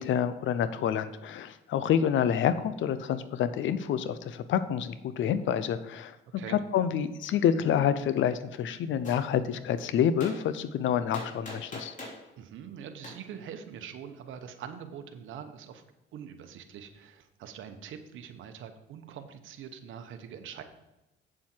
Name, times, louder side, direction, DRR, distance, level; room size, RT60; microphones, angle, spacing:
voice 1, 0.0-6.2 6.5-11.9, left 9 dB, 75° left, 13 dB, 0.7 m, -28 dB
Gunshot gunfire, 9.0-9.2 10.2-10.4 11.1-12.2 13.0-13.2, left 2 dB, 40° left, 3.0 m, -41 dB
voice 2, 12.4-15.8 16.1-20.6, right 8 dB, 80° right, 7 dB, 1.0 m, -44 dB
7.9 x 7.4 x 4.5 m, 0.99 s
cardioid pair, 90°, 20 cm